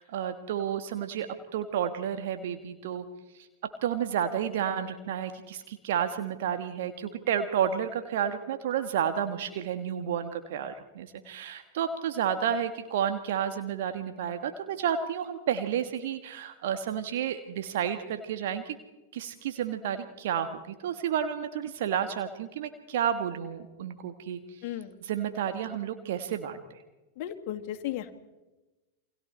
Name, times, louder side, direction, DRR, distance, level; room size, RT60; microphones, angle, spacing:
voice 1, 0.0-3.0 3.3-18.8 19.1-24.7 25.0-26.8, right 9 dB, 55° right, 8 dB, 1.5 m, -31 dB
voice 2, 24.6-24.9 27.2-28.1, left 12 dB, 45° left, 5 dB, 2.4 m, -35 dB
29.0 x 25.5 x 4.4 m, 1.1 s
figure-of-eight pair, 90°, 0 cm